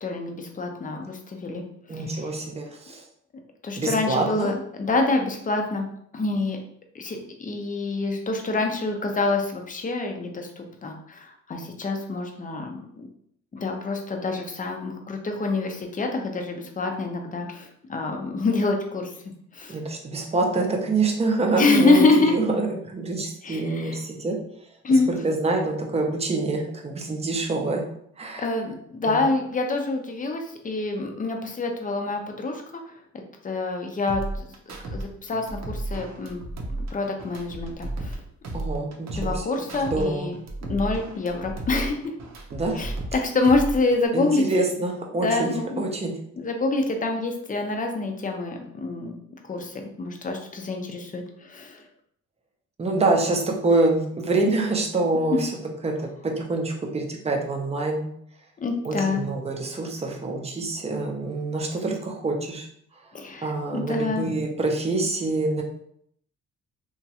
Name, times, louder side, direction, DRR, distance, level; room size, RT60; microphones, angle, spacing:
voice 1, 0.0-2.3 3.6-5.9 6.1-6.6 6.9-13.1 13.5-19.1 19.5-19.8 21.6-22.4 23.4-24.0 24.8-25.1 28.4-32.8 33.4-36.4 36.9-38.2 39.1-40.4 40.7-42.1 42.7-44.4 45.2-45.8 46.4-49.2 49.4-51.8 55.3-55.4 58.6-59.2 63.1-64.3, left 3 dB, 25° left, 3 dB, 0.5 m, -26 dB
voice 2, 1.9-3.0 3.8-4.5 19.7-22.7 22.9-24.4 25.1-27.9 28.2-28.4 29.1-29.2 38.5-39.4 39.8-40.3 42.5-42.8 44.1-45.5 45.8-46.2 52.8-55.5 55.8-58.1 58.8-62.7 63.4-65.6, right 2 dB, 20° right, 2 dB, 0.6 m, -26 dB
sound 1, 34.1-35.0 35.3-38.2 38.4-40.0 40.3-43.2 43.4-44.1, right 2 dB, 60° right, 0.7 m, -33 dB
2.9 x 2.4 x 2.8 m, 0.69 s
cardioid pair, 90°, 30 cm